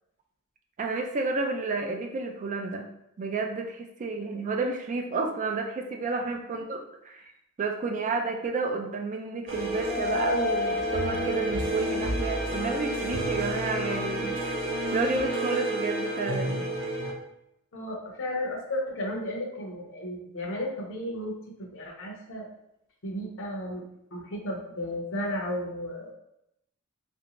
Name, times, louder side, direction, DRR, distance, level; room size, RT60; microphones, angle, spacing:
voice 1, 0.8-2.9 3.2-7.3 7.6-14.6 14.9-16.7, right 3 dB, 35° right, 4 dB, 0.3 m, -31 dB
sound 1, 9.5-17.1, equal, 60° right, 0.9 m, -29 dB
voice 2, 17.7-22.5 23.0-23.8 24.1-26.1, left 1 dB, 60° left, 0 dB, 0.7 m, -34 dB
3.3 x 2.6 x 2.9 m, 0.81 s
head